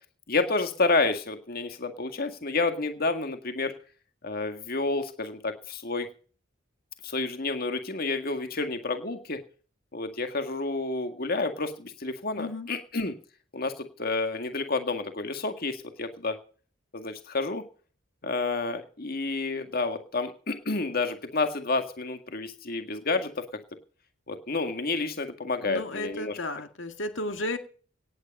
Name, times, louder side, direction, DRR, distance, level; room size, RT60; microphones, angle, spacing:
voice 1, 0.3-3.8 4.2-6.1 7.0-9.4 9.9-13.1 13.5-16.4 16.9-17.6 18.2-23.5 24.3-26.4, left 3 dB, 50° left, 1.8 m, -29 dB
voice 2, 12.4-12.7 25.6-27.6, left 2 dB, 70° left, 2.0 m, -33 dB
18.0 x 9.8 x 5.4 m
head